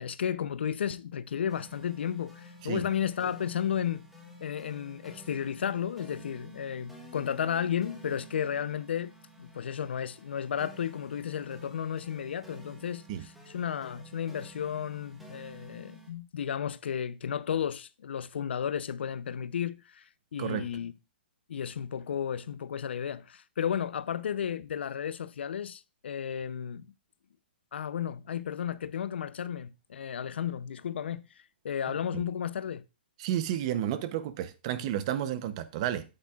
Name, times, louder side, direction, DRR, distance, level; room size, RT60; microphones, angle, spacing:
voice 1, 0.0-4.1 4.4-20.0 20.3-20.9 21.5-26.9 27.7-31.3 31.6-32.8, left 8 dB, 75° left, 0.6 m, -33 dB
sound 1, 1.5-16.1, right 1 dB, ahead, 1.4 m, -51 dB
voice 2, 31.9-32.2 33.2-36.0, right 11 dB, 30° right, 0.6 m, -32 dB
8.7 x 8.2 x 2.3 m
hypercardioid pair, 165°, 6 cm